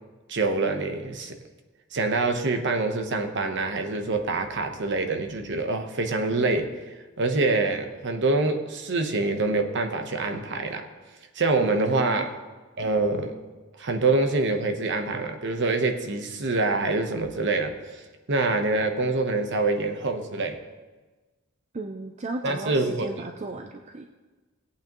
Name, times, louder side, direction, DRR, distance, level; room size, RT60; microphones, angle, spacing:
voice 1, 0.3-1.4 1.9-6.7 7.2-10.8 11.3-12.3 12.8-13.4 13.8-17.7 18.3-20.6 22.4-23.1, right 3 dB, 55° right, 6 dB, 1.0 m, -25 dB
voice 2, 11.6-12.3 21.7-24.1, right 2 dB, 30° right, 4 dB, 0.5 m, -35 dB
17.0 x 8.7 x 3.0 m, 1.3 s
head